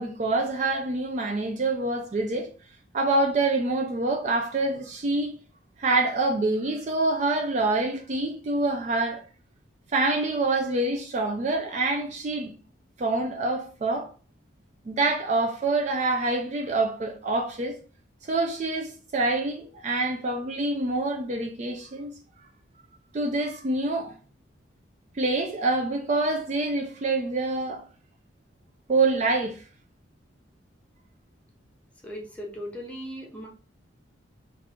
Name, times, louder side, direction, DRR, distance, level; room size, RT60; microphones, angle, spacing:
voice 1, 0.0-2.5 2.9-5.4 5.8-9.2 9.9-12.5 13.0-14.1 14.9-17.8 18.2-22.1 23.1-24.1 25.1-27.9 28.9-29.6, right 2 dB, 35° right, 0.3 m, -26 dB
voice 2, 32.0-33.5, equal, 5° left, 0.8 m, -38 dB
3.0 x 2.5 x 3.4 m
head